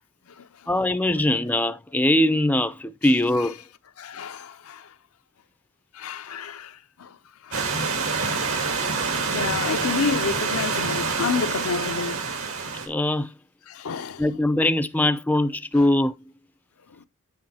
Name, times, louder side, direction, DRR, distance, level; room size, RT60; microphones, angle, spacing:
voice 1, 0.7-3.5 12.9-13.3 14.2-16.1, left 1 dB, 10° left, 0.4 m, -22 dB
voice 2, 4.0-4.9 5.9-7.1 7.4-7.7 9.3-12.2 13.7-14.2, left 5 dB, 80° left, 0.6 m, -29 dB
Stream / Liquid, 7.5-12.9, right 4 dB, 75° right, 1.9 m, -26 dB
7.5 x 6.9 x 2.8 m
head